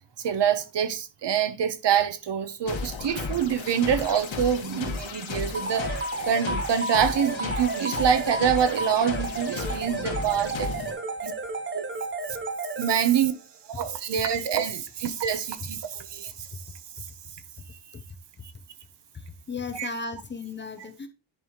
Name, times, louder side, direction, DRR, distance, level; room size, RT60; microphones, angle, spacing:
voice 1, 0.2-11.3 11.7-11.8 12.8-13.3 13.7-16.5 19.7-19.9, right 8 dB, 65° right, 0.9 m, -26 dB
sound 1, 2.7-10.9, left 4 dB, 85° left, 1.8 m, -34 dB
sound 2, 5.5-13.3, right 2 dB, 25° right, 0.9 m, -32 dB
voice 2, 19.1-21.1, left 4 dB, 25° left, 0.7 m, -36 dB
10.0 x 5.4 x 3.0 m
wide cardioid pair, 175°, 45 cm